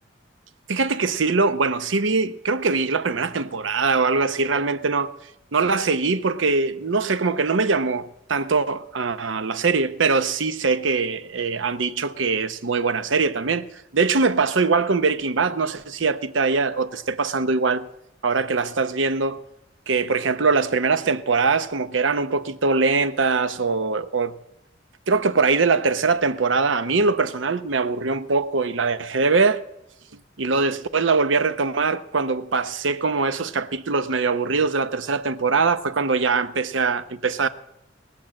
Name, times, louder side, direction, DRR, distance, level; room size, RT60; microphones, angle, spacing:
voice 1, 0.7-5.1 5.5-13.7 13.9-17.9 18.2-19.4 19.9-24.3 25.1-29.6 30.4-37.5, right 4 dB, 80° right, 0.8 m, -22 dB
20.5 x 7.4 x 7.6 m
head